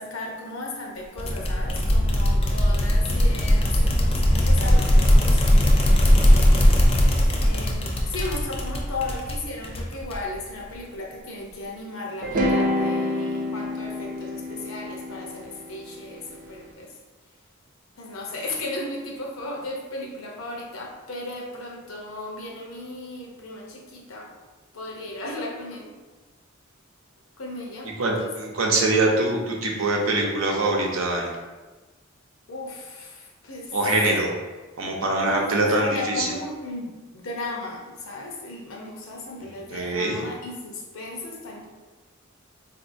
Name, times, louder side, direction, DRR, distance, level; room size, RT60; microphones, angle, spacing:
voice 1, 0.0-6.8 7.4-16.9 18.0-24.3 24.7-26.0 27.4-28.3 32.5-33.8 35.2-41.7, left 2 dB, 85° left, 0 dB, 0.7 m, -36 dB
sound 1, 1.2-10.4, equal, 30° left, 0.5 m, -19 dB
sound 2, 12.2-16.4, left 1 dB, 45° right, 0.5 m, -27 dB
voice 2, 28.0-31.3 33.7-34.3 34.8-36.3 39.7-40.2, right 2 dB, 90° right, 0 dB, 0.7 m, -23 dB
4.0 x 2.6 x 2.6 m, 1.3 s
head